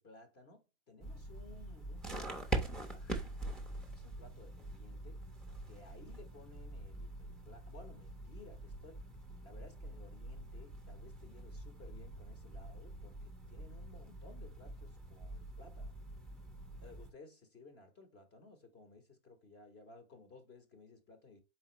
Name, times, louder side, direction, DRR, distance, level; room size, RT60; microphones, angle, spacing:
voice 1, 0.0-3.6 3.9-5.2 5.7-9.0 9.4-15.9 16.8-21.4, left 2 dB, 30° left, 1.0 m, -58 dB
sound 1, 1.0-17.1, right 2 dB, ahead, 0.6 m, -44 dB
4.3 x 3.6 x 3.0 m
hypercardioid pair, 135°, 35 cm